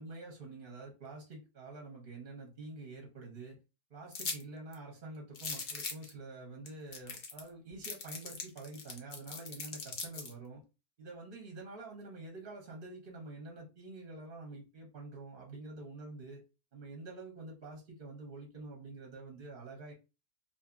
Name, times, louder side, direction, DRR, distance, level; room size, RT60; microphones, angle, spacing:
voice 1, 0.0-3.6 3.9-10.6 11.0-16.4 16.7-19.9, right 2 dB, 45° right, 0 dB, 0.7 m, -47 dB
sound 1, 4.1-4.4 4.7-4.8 5.3-6.1 6.7-6.8 6.9-7.5 7.8-10.3, left 5 dB, 60° left, 0.6 m, -40 dB
2.7 x 2.5 x 2.3 m, 0.28 s
omnidirectional pair, 1.7 m